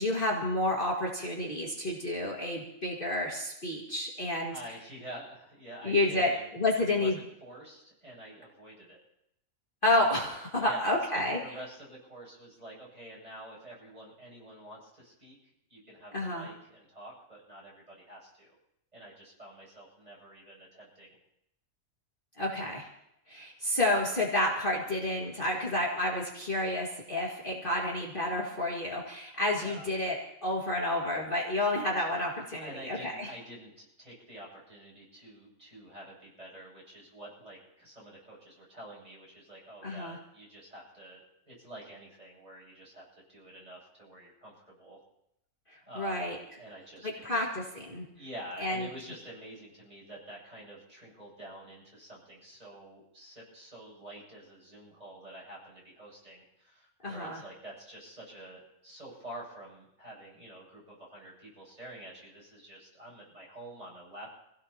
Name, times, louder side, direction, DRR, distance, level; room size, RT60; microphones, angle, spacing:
voice 1, 0.0-4.5 5.8-7.1 9.8-11.5 16.1-16.5 22.4-22.9 23.3-33.3 39.8-40.2 46.0-46.4 47.0-48.0 48.6-48.9 57.0-57.4, left 1 dB, 35° left, -3 dB, 2.2 m, -30 dB
voice 2, 4.5-9.0 10.5-15.4 15.7-18.5 18.9-21.1 29.6-29.9 32.6-45.0 45.9-47.4 48.1-64.3, right 1 dB, 25° right, -5 dB, 8.2 m, -48 dB
27.5 x 16.5 x 2.9 m, 0.80 s
omnidirectional pair, 1.5 m